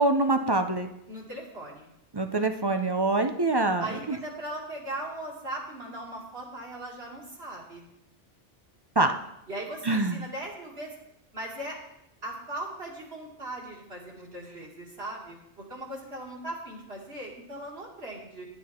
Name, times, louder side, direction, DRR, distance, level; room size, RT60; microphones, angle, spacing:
voice 1, 0.0-0.9 2.1-4.2 9.0-9.1 9.8-10.2, right 2 dB, 35° right, 7 dB, 0.4 m, -25 dB
voice 2, 1.1-1.9 3.8-7.8 9.5-11.0 11.3-11.8 12.2-18.5, right 1 dB, 55° right, -2 dB, 2.6 m, -39 dB
10.5 x 9.8 x 4.3 m, 0.83 s
omnidirectional pair, 1.2 m